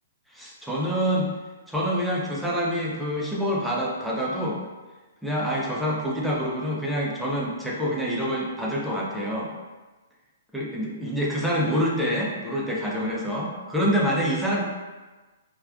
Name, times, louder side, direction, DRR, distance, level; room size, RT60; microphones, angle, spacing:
voice 1, 0.3-1.3 1.7-4.6 5.2-9.5 10.5-14.6, equal, ahead, -5 dB, 0.6 m, -26 dB
3.2 x 2.3 x 2.4 m, 1.2 s
hypercardioid pair, 130°, 0 cm